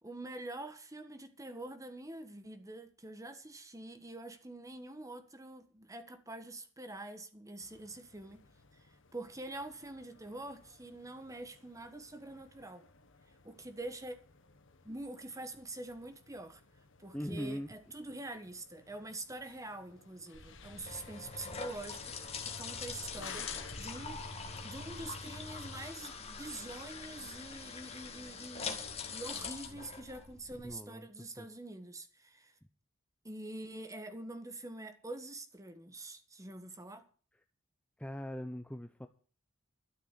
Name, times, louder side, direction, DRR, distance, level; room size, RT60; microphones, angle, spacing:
voice 1, 0.0-8.4 9.1-12.9 13.4-14.2 14.8-16.6 17.0-22.0 22.4-24.2 24.6-28.8 29.1-32.5 33.2-37.0, right 2 dB, 15° right, 1.5 m, -45 dB
sound 1, 7.6-25.9, left 2 dB, 60° left, 1.5 m, -54 dB
voice 2, 17.1-17.7 30.6-31.1 31.4-31.5 36.4-36.5 38.0-39.1, equal, 5° left, 0.7 m, -40 dB
sound 2, 20.3-30.7, left 5 dB, 30° left, 2.0 m, -44 dB
12.5 x 6.7 x 9.8 m
head